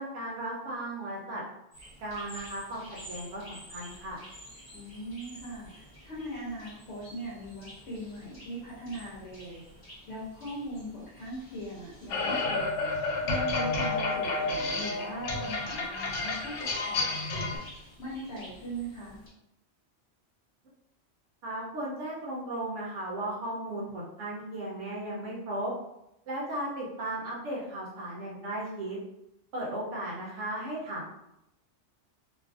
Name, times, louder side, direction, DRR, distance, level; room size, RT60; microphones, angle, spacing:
voice 1, 0.0-1.4 2.0-4.2 21.4-25.7 26.3-29.0 29.5-31.1, right 1 dB, 80° right, -5 dB, 1.0 m, -36 dB
sound 1, 1.7-19.3, equal, 20° left, 0.7 m, -51 dB
voice 2, 4.7-9.6 10.1-12.7 13.2-17.6 18.0-19.2, right 1 dB, 65° left, -6 dB, 1.0 m, -40 dB
sound 2, 12.1-17.6, left 3 dB, 85° left, 0.9 m, -30 dB
2.5 x 2.4 x 2.4 m, 0.83 s
omnidirectional pair, 1.2 m